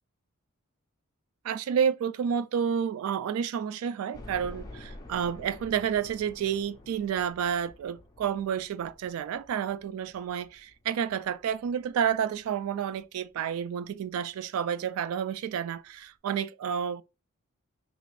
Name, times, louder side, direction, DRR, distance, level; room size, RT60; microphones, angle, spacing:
voice 1, 1.4-17.0, right 8 dB, 80° right, 0.3 m, -30 dB
sound 1, 4.1-13.0 13.5-13.6 14.0-14.1 15.3-15.4 15.7-15.8, left 1 dB, 20° left, 0.4 m, -49 dB
3.3 x 2.5 x 3.1 m
head